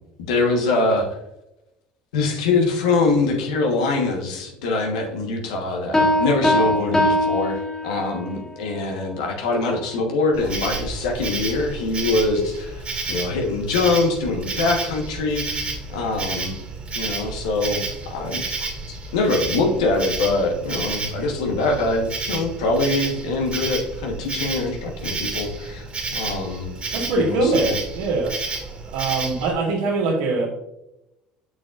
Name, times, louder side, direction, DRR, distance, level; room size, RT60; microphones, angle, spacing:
voice 1, 0.3-1.1 2.1-15.4 15.9-16.6 16.9-18.7 19.1-25.9 26.1-26.7 27.1-27.8, left 3 dB, 85° left, 2 dB, 1.3 m, -23 dB
sound 1, 5.9-8.3, left 1 dB, 15° left, 1.4 m, -21 dB
Insect, 10.3-29.5, right 3 dB, 35° right, 2.2 m, -31 dB
voice 2, 26.9-28.4 28.9-30.5, right 3 dB, 90° right, -10 dB, 2.3 m, -22 dB
7.3 x 6.4 x 2.5 m, 0.89 s
hypercardioid pair, 75°, 3 cm